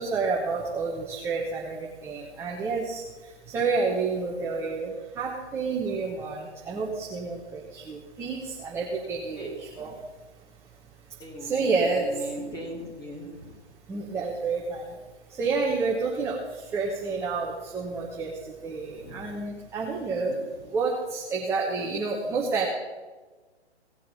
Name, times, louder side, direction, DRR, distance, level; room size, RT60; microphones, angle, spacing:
voice 1, 0.0-3.0 3.5-9.9 11.4-12.1 13.9-14.9 15.4-18.3 18.6-20.3 20.7-22.7, right 4 dB, 10° right, -2 dB, 1.0 m, -29 dB
voice 2, 11.2-13.6 18.9-19.2, equal, 10° left, -2 dB, 2.9 m, -39 dB
17.5 x 7.6 x 5.6 m, 1.3 s
hypercardioid pair, 140°, 34 cm